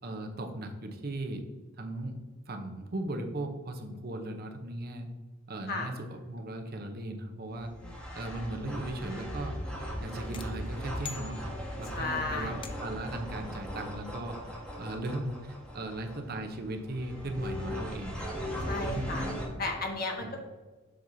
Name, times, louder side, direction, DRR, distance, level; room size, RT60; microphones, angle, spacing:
voice 1, 0.0-1.4 1.8-2.2 2.5-5.1 5.5-7.7 8.1-9.5 10.0-11.4 11.8-14.4 14.8-18.1 18.9-19.6 20.2-20.3, right 1 dB, 50° right, 5 dB, 0.8 m, -37 dB
sound 1, 7.5-19.5, equal, 5° left, 1.5 m, -39 dB
sound 2, 10.3-12.0 12.6-13.2, left 7 dB, 25° left, 0.5 m, -46 dB
voice 2, 11.9-12.6 18.6-19.3 19.6-20.4, left 3 dB, 45° left, 1 dB, 1.3 m, -34 dB
7.6 x 5.9 x 2.7 m, 1.3 s
head